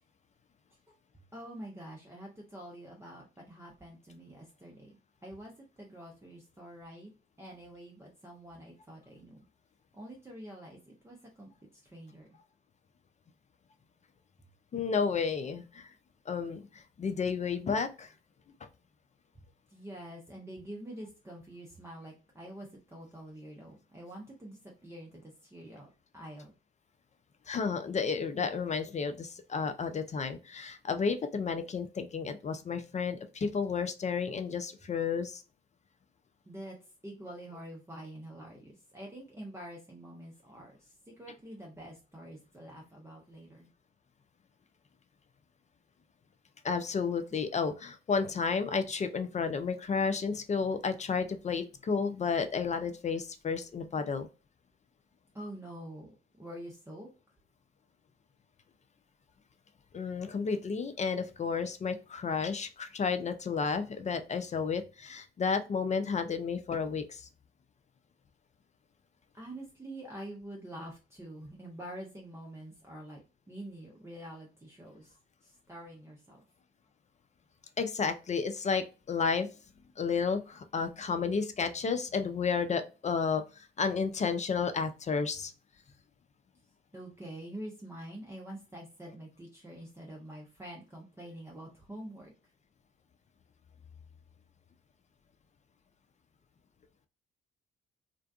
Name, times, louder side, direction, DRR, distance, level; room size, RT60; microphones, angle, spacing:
voice 1, 1.3-5.5 5.8-7.1 7.4-9.4 9.9-11.5 11.8-12.4 19.7-25.9 26.1-26.5 36.5-36.8 37.0-43.7 47.3-47.4 55.3-57.1 69.3-73.2 73.5-75.2 75.4-76.4 86.9-92.3, right 1 dB, 10° right, -2 dB, 0.7 m, -46 dB
voice 2, 14.7-15.9 16.3-18.1 27.5-35.4 46.6-54.3 59.9-67.3 77.8-79.5 80.0-85.5, left 5 dB, 25° left, 9 dB, 0.3 m, -32 dB
2.5 x 2.2 x 2.3 m, 0.32 s
hypercardioid pair, 45°, 29 cm